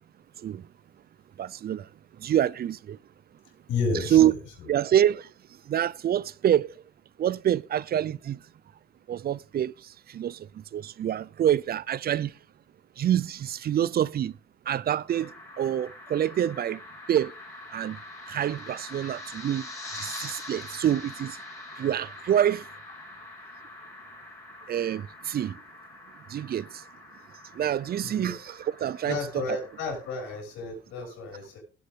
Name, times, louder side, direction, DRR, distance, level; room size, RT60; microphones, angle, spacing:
voice 1, 1.4-1.9 2.2-3.0 4.1-4.3 4.7-5.3 5.7-6.7 7.2-8.4 9.1-9.7 10.1-12.3 13.0-14.3 14.7-16.8 17.1-17.3 17.7-18.0 18.3-19.7 20.0-21.4 21.8-22.6 24.7-25.6 26.3-26.8 27.5-29.2 29.5-29.6, right 10 dB, 50° right, 0.5 m, -26 dB
voice 2, 3.7-4.3 4.7-4.8 28.0-28.4 29.0-31.6, left 4 dB, 90° left, 5.5 m, -32 dB
sound 1, 15.1-30.4, left 2 dB, 15° left, 5.0 m, -44 dB
17.0 x 7.7 x 3.6 m
cardioid pair, 90°, 20 cm